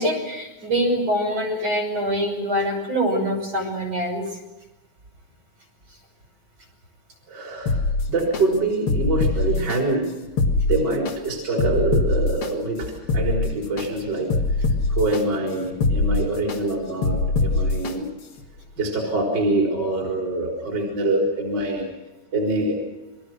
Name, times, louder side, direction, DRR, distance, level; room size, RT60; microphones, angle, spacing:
voice 1, 0.0-4.2, equal, 45° right, 3 dB, 6.8 m, -24 dB
voice 2, 7.3-7.8 8.1-10.0 10.6-14.3 14.9-18.1 18.8-21.8 22.3-22.8, right 2 dB, 30° right, -1 dB, 4.7 m, -24 dB
sound 1, 7.7-8.4 8.9-9.8 10.2-11.1 11.6-12.5 12.9-13.9 14.3-15.2 15.7-16.6 17.0-17.9 18.4-18.5, left 3 dB, 45° left, 2.4 m, -22 dB
28.5 x 23.0 x 6.4 m, 1.1 s
omnidirectional pair, 4.1 m